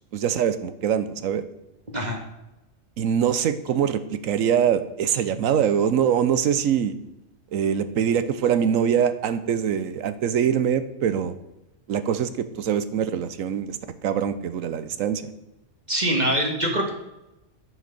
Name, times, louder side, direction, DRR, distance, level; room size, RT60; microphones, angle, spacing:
voice 1, 0.1-1.4 3.0-6.9 7.5-11.3 11.9-15.2, right 8 dB, 80° right, 12 dB, 1.1 m, -23 dB
voice 2, 15.9-16.9, right 1 dB, 35° right, 1 dB, 1.7 m, -23 dB
9.3 x 6.5 x 6.6 m, 0.94 s
omnidirectional pair, 1.4 m